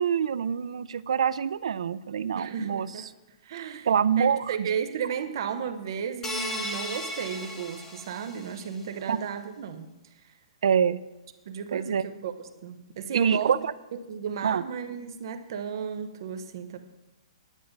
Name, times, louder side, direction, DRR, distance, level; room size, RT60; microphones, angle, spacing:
voice 1, 0.0-2.9 3.9-4.7 9.1-9.2 10.6-11.0 11.7-12.0 13.1-13.7 14.4-14.6, right 7 dB, 70° right, 16 dB, 0.5 m, -25 dB
voice 2, 2.3-3.1 3.4-3.9 4.2-9.9 10.2-10.3 11.5-12.3 12.6-13.5 13.9-16.8, right 7 dB, 40° right, 9 dB, 0.9 m, -34 dB
sound 1, 6.2-8.7, left 1 dB, 10° left, 1.1 m, -36 dB
10.0 x 9.5 x 5.3 m, 1.0 s
hypercardioid pair, 180°, 3 cm